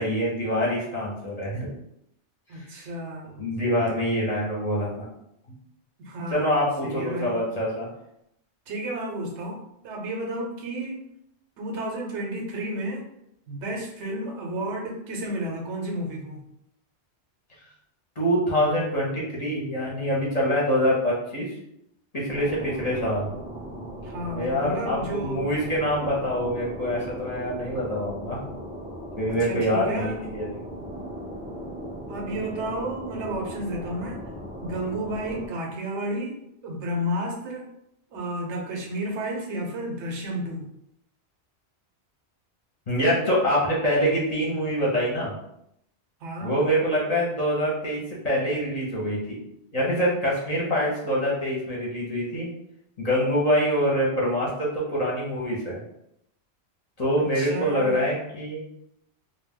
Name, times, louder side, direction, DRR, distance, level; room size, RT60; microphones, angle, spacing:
voice 1, 0.0-1.7 2.5-2.8 3.4-5.0 6.3-7.9 18.2-21.5 22.1-23.3 24.3-28.5 29.2-30.5 42.9-45.3 46.4-49.4 49.7-52.5 53.0-55.8 57.0-58.7, equal, 40° left, -5 dB, 0.7 m, -25 dB
voice 2, 2.5-3.4 6.0-7.4 8.7-11.1 11.6-13.1 13.5-16.4 24.0-25.5 29.3-30.2 32.1-34.2 34.6-37.7 38.1-40.7 46.2-46.6 57.2-58.0, right 1 dB, 80° right, 1 dB, 1.0 m, -32 dB
sound 1, 22.3-35.5, equal, 10° right, 0.3 m, -38 dB
2.3 x 2.2 x 3.4 m, 0.78 s
omnidirectional pair, 1.2 m